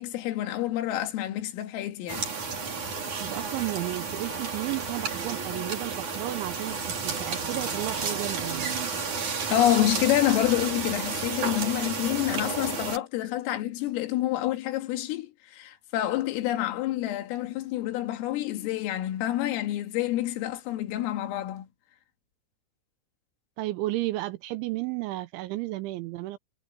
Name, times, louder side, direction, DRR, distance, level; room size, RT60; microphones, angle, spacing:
voice 1, 0.0-2.3 9.5-21.7, left 13 dB, 85° left, 4.5 m, -28 dB
sound 1, 2.1-13.0, right 5 dB, 40° right, 5.1 m, -32 dB
voice 2, 3.2-8.7 23.6-26.4, right 17 dB, 80° right, 3.0 m, -33 dB
omnidirectional pair, 5.8 m